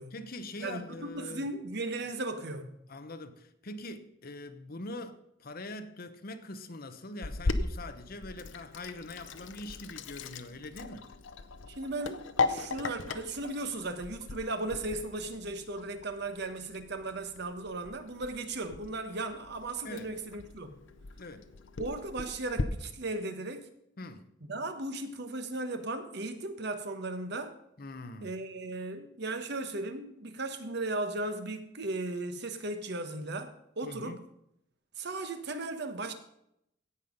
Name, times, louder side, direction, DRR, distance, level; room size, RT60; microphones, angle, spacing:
voice 1, 0.1-1.5 2.9-11.1 19.8-20.1 21.2-21.5 24.0-24.3 27.8-28.4 33.8-34.2, left 2 dB, 50° left, 0.9 m, -43 dB
voice 2, 0.6-2.8 11.8-20.7 21.8-23.7 24.5-27.6 28.2-34.2 35.0-36.1, right 2 dB, 60° right, 1.2 m, -36 dB
Sink (filling or washing), 7.2-22.6, left 3 dB, 75° left, 0.7 m, -38 dB
16.5 x 5.6 x 5.2 m
head